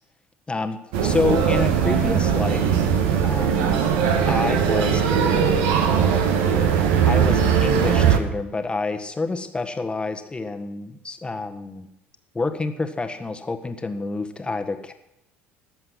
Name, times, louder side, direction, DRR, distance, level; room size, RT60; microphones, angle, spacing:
voice 1, 0.5-2.7 3.1-3.9 4.3-5.9 7.0-11.9 12.3-14.9, left 3 dB, 15° left, 7 dB, 1.5 m, -28 dB
sound 1, 0.9-8.2, right 7 dB, 65° right, 1.5 m, -20 dB
19.5 x 7.7 x 6.1 m, 0.86 s
figure-of-eight pair, 60°, 6 cm